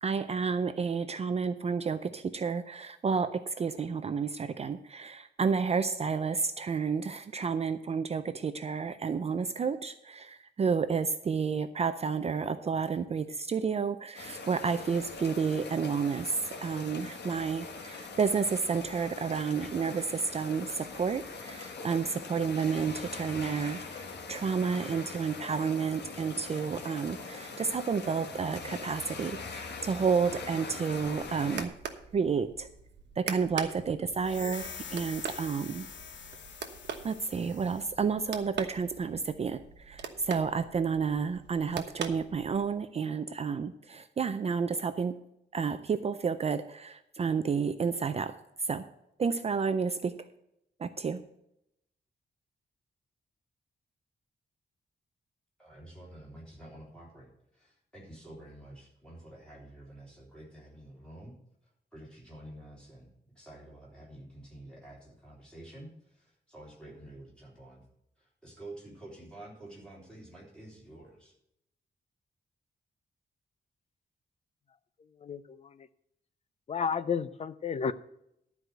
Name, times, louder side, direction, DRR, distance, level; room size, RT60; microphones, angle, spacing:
voice 1, 0.0-16.3 16.6-31.7 32.1-32.7 33.2-35.9 37.0-39.6 39.9-45.2 45.5-48.3 48.7-48.8 49.2-50.3 50.8-51.2, right 5 dB, 35° right, 10 dB, 0.4 m, -31 dB
sound 1, 14.1-31.7, left 4 dB, 65° left, 1.4 m, -42 dB
sound 2, 30.9-42.8, right 6 dB, 75° right, 1.1 m, -43 dB
sound 3, 34.2-37.9, left 6 dB, 85° left, 1.1 m, -45 dB
voice 2, 55.6-61.3 61.9-63.1 63.4-67.8 68.2-71.3, right 1 dB, 5° left, -5 dB, 3.6 m, -49 dB
voice 3, 75.2-75.9 76.7-77.9, left 6 dB, 35° left, 14 dB, 0.5 m, -32 dB
12.0 x 4.8 x 7.8 m, 0.79 s
wide cardioid pair, 180°, 18 cm